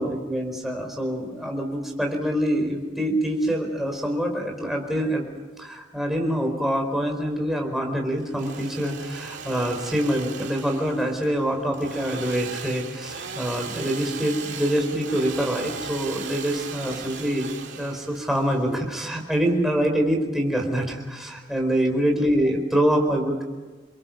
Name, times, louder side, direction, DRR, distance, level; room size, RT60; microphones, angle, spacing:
voice 1, 0.0-5.2 5.6-23.4, equal, ahead, 1 dB, 4.5 m, -25 dB
Engine / Sawing, 8.2-19.9, right 5 dB, 70° right, 2.9 m, -38 dB
29.5 x 23.0 x 6.0 m, 1.3 s
head